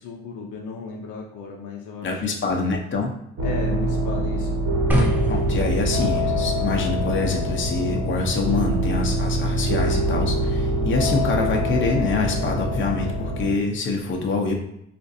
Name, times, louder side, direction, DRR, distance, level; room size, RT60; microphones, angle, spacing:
voice 1, 0.0-2.2 3.4-4.6, left 4 dB, 80° left, -1 dB, 0.6 m, -35 dB
voice 2, 2.0-3.1 5.3-14.5, left 3 dB, 40° left, 1 dB, 0.7 m, -25 dB
sound 1, 3.4-13.5, equal, 65° right, 1.0 m, -24 dB
sound 2, 4.9-11.0, right 1 dB, 5° right, 0.5 m, -31 dB
3.8 x 2.5 x 2.6 m, 0.78 s
cardioid pair, 90°, 30 cm